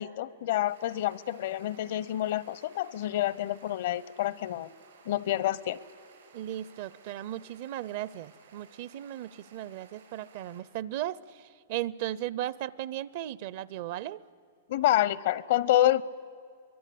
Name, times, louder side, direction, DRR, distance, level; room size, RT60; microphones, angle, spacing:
voice 1, 0.0-4.7 5.1-5.8 14.7-16.0, left 13 dB, 60° left, 21 dB, 0.7 m, -28 dB
sound 1, 0.6-10.6, right 5 dB, 80° right, 6.3 m, -57 dB
voice 2, 6.3-14.2, right 13 dB, 50° right, 20 dB, 0.6 m, -36 dB
23.5 x 22.0 x 8.5 m, 2.3 s
hypercardioid pair, 140°, 0 cm